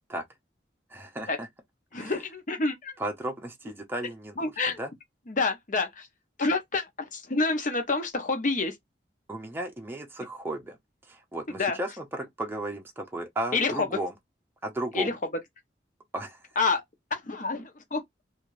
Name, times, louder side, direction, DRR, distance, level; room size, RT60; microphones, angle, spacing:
voice 1, 0.9-1.5 1.9-2.2 3.0-4.5 4.8-4.9 9.3-10.8 11.1-14.1 14.6-15.1 16.1-16.4, right 1 dB, 15° right, 0.6 m, -34 dB
voice 2, 1.9-2.9 4.4-4.8 5.3-6.1 6.4-8.7 11.6-11.8 13.5-13.9 14.9-15.1 16.6-16.8 17.1-18.0, left 3 dB, 50° left, 0.9 m, -28 dB
2.6 x 2.4 x 3.1 m
head